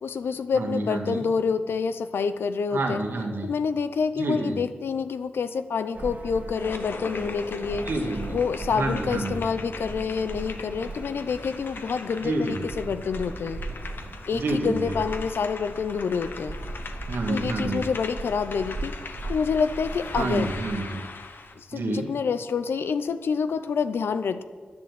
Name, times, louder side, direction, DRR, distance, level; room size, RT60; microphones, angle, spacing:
voice 1, 0.0-3.0 3.4-7.9 8.3-13.6 14.3-16.6 17.3-20.5 21.6-24.4, left 5 dB, 90° left, 12 dB, 0.7 m, -27 dB
voice 2, 0.5-1.3 2.7-3.5 4.2-4.6 7.9-8.2 8.7-9.4 12.2-12.6 14.3-14.9 17.1-17.9 20.2-21.0 21.7-22.1, right 2 dB, 80° right, 1 dB, 2.4 m, -28 dB
sound 1, 5.9-21.1, right 2 dB, 50° right, 2.2 m, -38 dB
sound 2, 6.5-21.6, left 4 dB, 65° left, 1.2 m, -41 dB
10.5 x 10.5 x 8.4 m, 1.5 s
cardioid pair, 70°, 4 cm